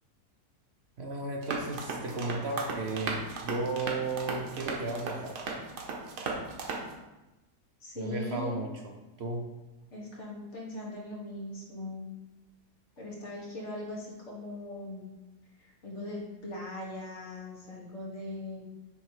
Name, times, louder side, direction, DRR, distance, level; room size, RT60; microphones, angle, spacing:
voice 1, 1.0-5.4 8.0-9.4, right 2 dB, 55° right, 1 dB, 0.7 m, -34 dB
sound 1, 1.4-6.9, right 4 dB, 85° right, 1.5 m, -36 dB
voice 2, 7.8-8.6 9.9-12.1 13.0-15.1 15.6-18.6, left 1 dB, 45° left, -3 dB, 1.8 m, -40 dB
8.2 x 3.1 x 4.8 m, 1.0 s
omnidirectional pair, 1.7 m